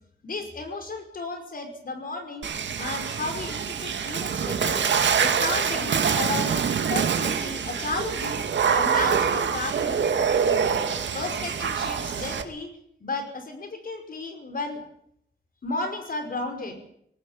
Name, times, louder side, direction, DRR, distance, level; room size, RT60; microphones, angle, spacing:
voice 1, 0.2-2.5 2.8-4.9 5.2-6.5 6.9-8.4 8.7-10.7 11.1-12.7 13.0-14.8 15.6-16.8, left 3 dB, 50° left, 6 dB, 5.5 m, -33 dB
Water / Splash splatter, 2.4-12.4, right 6 dB, 90° right, 2.2 m, -25 dB
20.0 x 17.5 x 8.8 m, 0.71 s
wide cardioid pair, 150°, 18 cm